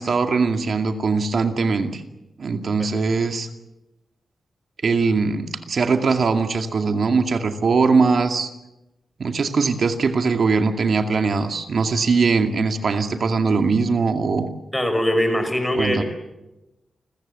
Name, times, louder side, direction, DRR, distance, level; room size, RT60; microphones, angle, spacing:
voice 1, 0.0-2.0 2.4-3.5 4.8-8.5 9.2-14.5 15.7-16.0, right 4 dB, 60° right, 6 dB, 2.2 m, -21 dB
voice 2, 14.7-16.0, equal, 10° left, 7 dB, 5.7 m, -21 dB
29.5 x 14.5 x 8.0 m, 0.97 s
cardioid pair, 85°, 0 cm